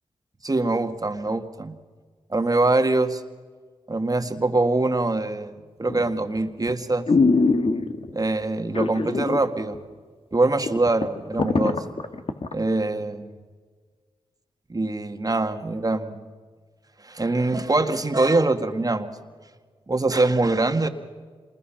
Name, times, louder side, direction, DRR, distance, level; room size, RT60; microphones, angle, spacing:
voice 1, 0.4-1.8 2.3-3.2 3.9-7.1 8.1-9.8 10.3-11.8 12.5-13.3 14.7-16.3 17.0-19.1 19.9-20.9, right 2 dB, 30° right, 7 dB, 1.8 m, -23 dB
sound 1, 5.9-6.2 6.7-6.8 7.1-8.1 8.7-9.4 9.7-9.8 10.3-10.4 10.7-12.5 13.0-13.1, left 3 dB, 55° left, 1.7 m, -22 dB
27.0 x 20.5 x 5.8 m, 1.5 s
supercardioid pair, 40°, 12 cm